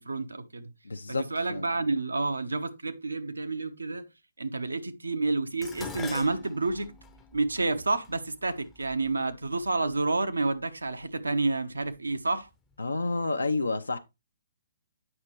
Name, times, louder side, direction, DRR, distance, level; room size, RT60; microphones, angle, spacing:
voice 1, 0.0-0.7 1.1-4.0 4.4-6.9 7.3-12.5, right 3 dB, 75° right, 1.0 m, -29 dB
voice 2, 0.8-1.7 12.8-14.0, left 3 dB, 75° left, 0.6 m, -30 dB
Dishes pots and pans, 5.6-10.0 10.9-11.3 11.6-12.5 12.7-12.8, left 5 dB, 10° left, 0.6 m, -45 dB
8.5 x 5.8 x 3.1 m
figure-of-eight pair, 130°, 0 cm